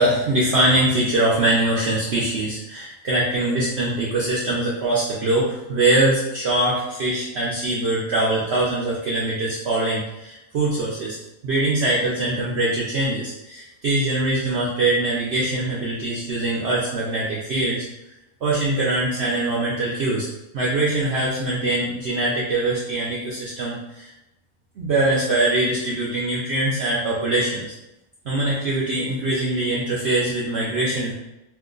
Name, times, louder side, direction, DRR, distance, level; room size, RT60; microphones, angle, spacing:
voice 1, 0.0-11.2 11.4-17.8 18.4-20.3 20.5-24.1 24.8-27.7 28.2-31.1, right 2 dB, 60° right, -5 dB, 0.7 m, -22 dB
2.9 x 2.1 x 3.7 m, 0.94 s
omnidirectional pair, 1.6 m